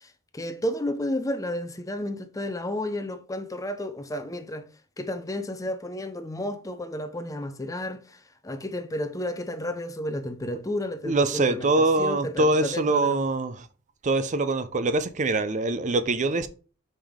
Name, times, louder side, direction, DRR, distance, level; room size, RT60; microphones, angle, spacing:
voice 1, 0.0-4.7 5.0-13.2, left 1 dB, 15° left, 0.6 m, -32 dB
voice 2, 11.0-13.7 14.0-16.5, right 2 dB, 35° right, 0.5 m, -24 dB
5.4 x 5.0 x 3.6 m
head